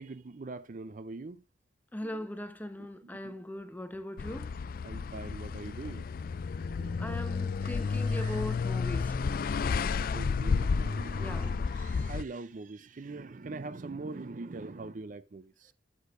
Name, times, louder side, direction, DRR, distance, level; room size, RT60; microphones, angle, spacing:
voice 1, 0.0-1.4 2.0-2.3 3.2-3.4 4.8-6.1 6.6-7.3 7.6-8.4 10.1-15.7, right 3 dB, 45° right, 0.5 m, -43 dB
voice 2, 1.9-4.6 7.0-9.2 11.2-11.5, left 1 dB, 10° left, 1.0 m, -39 dB
sound 1, 4.2-12.2, left 5 dB, 55° left, 0.4 m, -31 dB
13.0 x 8.3 x 2.6 m
head